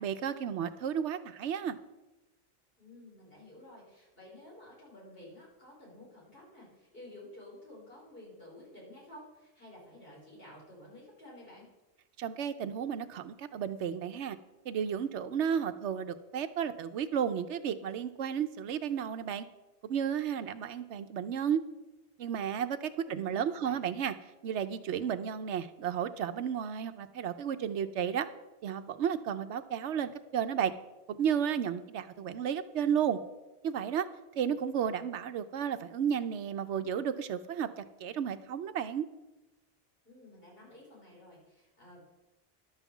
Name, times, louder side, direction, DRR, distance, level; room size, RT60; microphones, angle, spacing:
voice 1, 0.0-1.8 12.2-14.4 14.6-19.5 19.8-21.6 22.2-24.1 24.4-28.3 28.6-30.7 31.2-33.2 33.6-34.1 34.4-39.0, right 8 dB, 80° right, 11 dB, 1.0 m, -33 dB
voice 2, 2.8-11.7 23.1-23.9 32.4-32.5 40.0-42.0, left 1 dB, 55° left, -5 dB, 4.4 m, -52 dB
11.5 x 5.7 x 7.1 m, 1.0 s
omnidirectional pair, 1.2 m